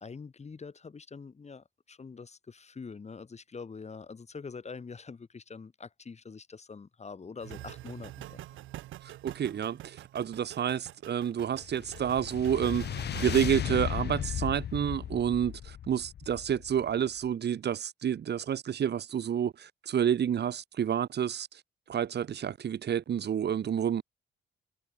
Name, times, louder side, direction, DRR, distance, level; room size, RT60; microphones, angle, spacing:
voice 1, 0.0-8.4, left 5 dB, 35° left, 5.7 m, -45 dB
sound 1, 7.4-13.5, right 15 dB, 85° right, 2.4 m, -46 dB
voice 2, 9.0-12.8 13.2-21.5 21.9-24.0, right 9 dB, 55° right, 3.0 m, -29 dB
sound 2, 11.5-17.0, left 10 dB, 55° left, 1.2 m, -36 dB
cardioid pair, 90°, 20 cm